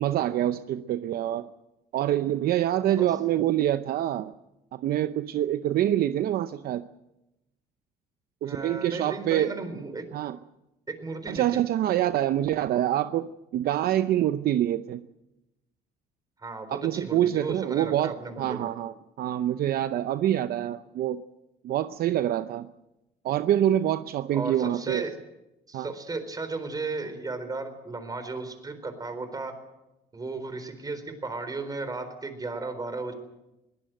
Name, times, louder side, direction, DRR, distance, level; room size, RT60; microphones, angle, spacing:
voice 1, 0.0-1.5 1.9-4.3 4.7-6.9 8.4-9.5 10.1-10.4 11.3-15.0 16.7-21.2 21.6-22.7 23.2-25.0 25.7-25.9, right 12 dB, 65° right, 12 dB, 0.7 m, -26 dB
voice 2, 8.4-10.1 11.0-11.6 16.4-18.7 24.3-25.1 25.7-29.5 30.1-33.1, right 3 dB, 20° right, 9 dB, 4.2 m, -35 dB
22.0 x 17.5 x 7.8 m, 0.93 s
cardioid pair, 110°, 17 cm